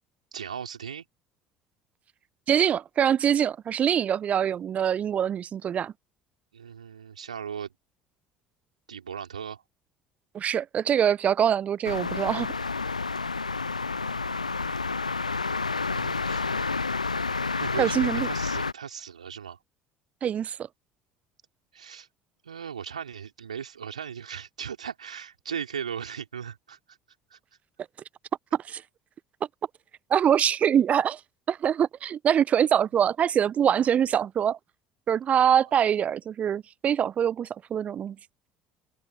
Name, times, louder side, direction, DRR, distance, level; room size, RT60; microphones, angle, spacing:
voice 1, 0.3-1.0 6.5-7.7 8.9-9.6 14.1-14.9 15.9-16.9 17.6-19.6 21.7-22.1 22.4-27.0 27.3-27.4, right 7 dB, 80° right, 4.0 m, -38 dB
voice 2, 2.5-5.9 10.3-12.6 17.8-18.3 20.2-20.6 28.5-28.8 30.1-31.2 31.5-34.6 35.1-38.2, right 9 dB, 40° right, 0.8 m, -24 dB
sound 1, 11.8-18.7, left 4 dB, 85° left, 0.5 m, -29 dB
open air
figure-of-eight pair, 60°, 4 cm